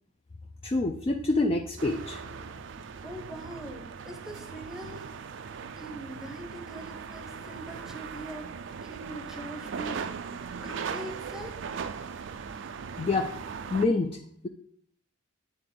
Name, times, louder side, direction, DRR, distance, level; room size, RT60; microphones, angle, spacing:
voice 1, 0.6-2.2 13.0-13.3 13.7-14.2, left 3 dB, 25° left, 4 dB, 0.3 m, -26 dB
sound 1, 1.8-13.9, right 6 dB, 60° right, 0.3 m, -39 dB
voice 2, 3.0-5.0 5.8-8.5 8.8-11.5, right 1 dB, ahead, 3 dB, 0.8 m, -42 dB
9.2 x 3.5 x 3.8 m, 0.64 s
head